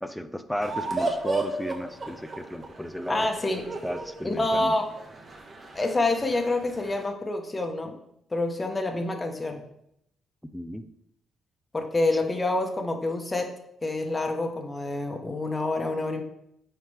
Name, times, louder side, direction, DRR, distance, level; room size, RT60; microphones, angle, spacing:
voice 1, 0.0-3.3 3.8-4.8 10.5-10.8, equal, 5° left, 9 dB, 0.6 m, -34 dB
sound 1, 0.6-7.1, right 3 dB, 35° right, 1.5 m, -34 dB
voice 2, 3.1-3.7 4.2-4.9 5.7-7.9 8.3-9.6 11.7-13.5 13.8-16.2, left 2 dB, 20° left, 3 dB, 1.3 m, -27 dB
9.1 x 4.8 x 3.6 m, 0.76 s
cardioid pair, 90°, 0 cm